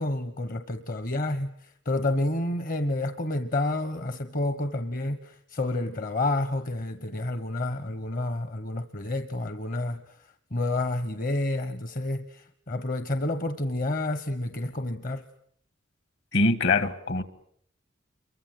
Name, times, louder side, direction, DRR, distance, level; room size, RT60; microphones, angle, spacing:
voice 1, 0.0-15.2, left 2 dB, 45° left, 10 dB, 1.1 m, -29 dB
voice 2, 16.3-17.2, left 3 dB, 60° left, 13 dB, 1.9 m, -23 dB
29.0 x 23.5 x 7.8 m, 0.67 s
head